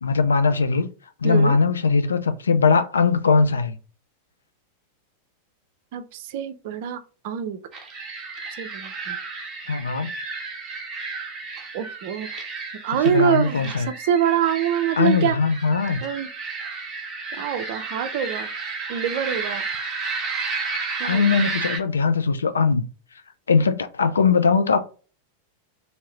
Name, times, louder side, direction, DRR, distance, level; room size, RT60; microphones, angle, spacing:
voice 1, 0.0-0.9 1.2-3.8 9.7-10.1 13.1-13.9 15.0-16.0 21.0-22.8 23.5-24.8, left 5 dB, 70° left, 0.4 m, -20 dB
voice 2, 1.2-1.6 5.9-7.6 8.6-9.2 11.7-12.4 12.8-15.4 16.0-16.3 17.4-18.5 18.9-19.6 21.0-21.5, right 9 dB, 50° right, 0.5 m, -25 dB
sound 1, 7.7-21.8, right 4 dB, 30° right, 0.9 m, -32 dB
2.8 x 2.7 x 3.2 m
figure-of-eight pair, 90°, 0 cm